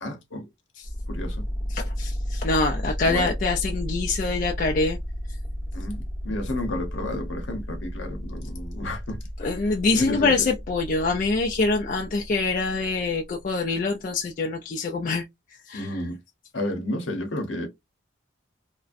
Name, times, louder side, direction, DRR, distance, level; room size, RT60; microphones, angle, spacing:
voice 1, 0.0-0.5 1.1-1.5 3.0-3.3 5.7-10.5 15.7-16.2 16.5-17.7, left 1 dB, 75° left, 0.8 m, -32 dB
sound 1, 0.8-13.5, equal, 25° left, 1.0 m, -33 dB
voice 2, 1.7-5.0 9.4-15.2 15.7-15.9, left 3 dB, 40° left, 0.3 m, -25 dB
2.5 x 2.1 x 2.4 m
head